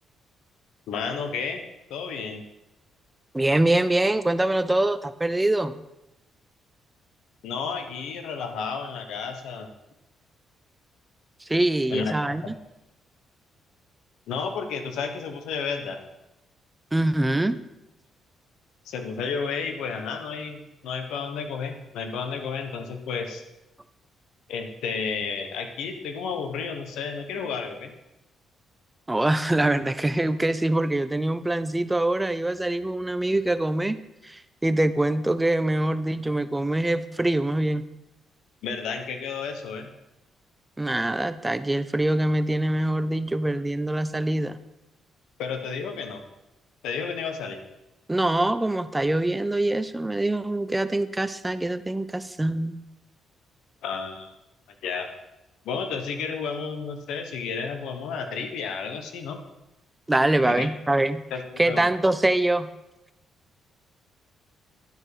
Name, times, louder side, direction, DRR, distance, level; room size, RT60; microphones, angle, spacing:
voice 1, 0.9-1.6 1.9-2.4 7.4-9.7 11.9-12.1 12.4-12.5 14.3-16.0 18.9-23.4 24.5-27.9 38.6-39.9 45.4-46.2 46.8-47.6 53.8-54.3 54.8-55.1 55.6-59.4 60.5-60.7 61.3-61.4 61.7-61.8, left 5 dB, 85° left, 6 dB, 1.0 m, -32 dB
voice 2, 3.3-5.8 11.5-12.5 16.9-17.6 29.1-34.0 34.2-37.8 40.8-44.6 48.1-52.8 60.1-61.2 61.6-62.7, right 1 dB, 10° right, 13 dB, 0.4 m, -24 dB
10.5 x 4.9 x 4.8 m, 0.94 s
cardioid pair, 90°, 0 cm